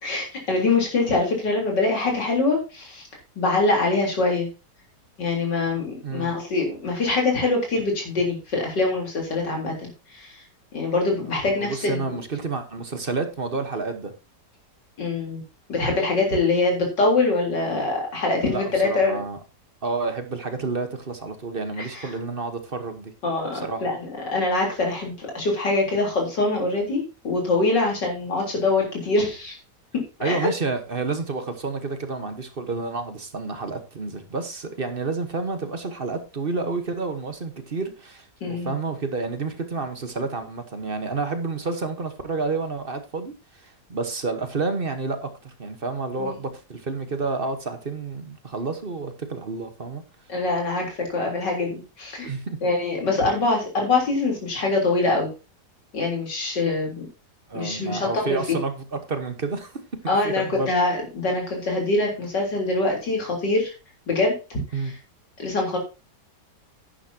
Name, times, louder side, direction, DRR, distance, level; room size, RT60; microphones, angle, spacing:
voice 1, 0.0-3.0 3.4-4.5 5.2-10.4 10.7-12.2 15.0-15.4 15.7-19.2 21.8-22.0 23.2-29.6 30.2-30.5 38.4-38.7 46.2-46.3 50.3-52.3 52.6-55.3 55.9-57.1 57.5-58.6 60.1-63.7 64.1-64.6 65.4-65.8, left 3 dB, 85° left, 0 dB, 4.3 m, -24 dB
voice 2, 6.0-6.3 11.3-14.1 18.5-19.4 19.8-23.1 23.5-23.9 30.2-50.0 52.2-52.6 57.5-59.7 60.0-60.7 64.7-64.9, right 3 dB, 35° right, 8 dB, 1.3 m, -30 dB
11.0 x 10.0 x 2.8 m, 0.30 s
omnidirectional pair, 1.8 m